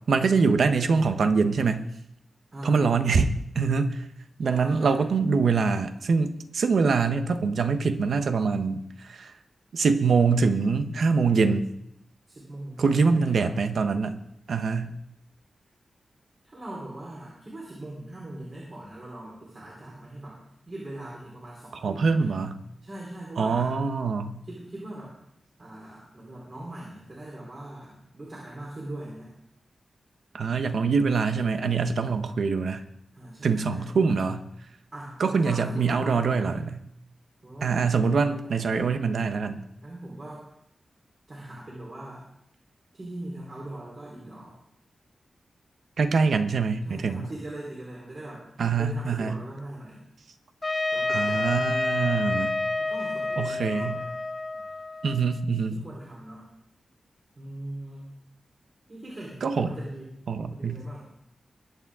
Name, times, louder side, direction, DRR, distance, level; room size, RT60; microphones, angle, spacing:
voice 1, 0.1-1.9 2.6-3.3 3.5-4.0 4.4-9.3 9.7-11.7 12.8-14.2 14.5-14.9 21.8-22.6 23.4-24.4 30.3-32.8 33.4-34.4 35.2-36.8 37.6-39.6 46.0-47.3 48.6-49.4 51.1-52.6 53.4-54.0 55.0-55.8 59.4-59.7 60.3-60.8, right 5 dB, 80° right, 9 dB, 1.0 m, -24 dB
voice 2, 2.5-3.1 4.4-5.0 12.3-13.5 16.4-20.4 20.7-22.3 22.8-23.7 24.4-25.1 25.6-29.3 33.1-34.2 34.9-36.5 37.4-37.9 38.2-38.8 39.8-40.5 41.3-42.3 42.9-44.6 46.8-48.4 48.8-50.0 50.9-51.7 52.8-54.1 54.5-55.3 55.6-56.5 57.4-58.2 58.9-60.1 60.5-61.1, right 1 dB, 45° right, -5 dB, 4.0 m, -41 dB
Trumpet, 50.6-55.5, left 2 dB, 35° left, 1.5 m, -29 dB
21.5 x 8.7 x 3.7 m, 0.76 s
wide cardioid pair, 95°, 0 cm